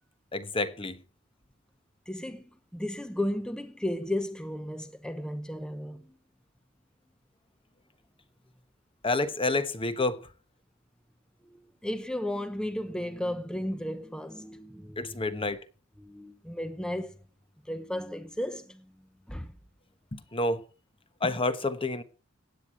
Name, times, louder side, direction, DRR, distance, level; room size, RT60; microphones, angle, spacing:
voice 1, 0.3-1.0 9.0-10.3 15.0-15.6 20.1-20.6 21.2-22.0, left 2 dB, 25° left, 1.1 m, -29 dB
voice 2, 2.1-2.5 2.7-6.1 11.5-15.4 16.0-17.2 17.7-18.9 19.3-19.5, left 1 dB, 5° left, 0.9 m, -34 dB
16.5 x 9.3 x 4.7 m
head